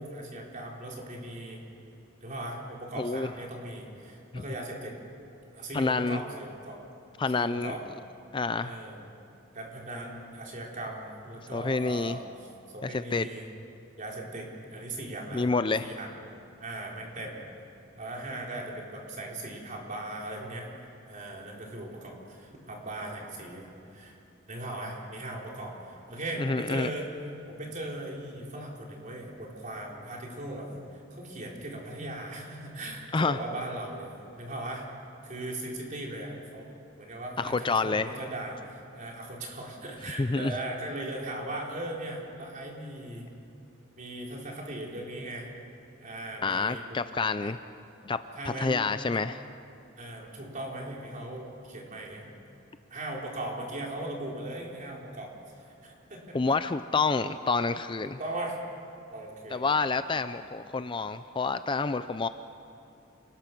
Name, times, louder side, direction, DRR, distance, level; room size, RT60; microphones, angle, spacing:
voice 1, 0.0-1.6 2.2-4.9 5.5-6.8 7.3-7.8 8.6-9.0 9.5-12.2 12.7-13.5 14.0-15.5 15.8-16.1 16.6-17.4 17.9-20.7 21.1-24.2 24.5-27.1 27.5-34.8 35.2-36.7 37.0-43.3 44.0-45.5 46.0-47.1 47.4-47.5 48.4-48.8 49.1-49.2 50.0-52.3 52.9-55.3 55.7-56.4 58.2-58.6 59.1-59.7, right 1 dB, 40° right, -1 dB, 4.1 m, -38 dB
voice 2, 2.9-3.3 4.3-4.4 5.7-6.2 7.2-7.7 8.3-8.8 11.5-12.2 12.8-13.3 15.3-15.9 26.4-26.9 33.1-33.4 37.4-38.1 40.2-40.5 46.4-47.6 48.0-48.2 48.6-49.4 56.3-58.2 59.5-62.3, left 4 dB, 25° left, 11 dB, 0.4 m, -28 dB
28.5 x 20.5 x 6.1 m, 2.7 s
head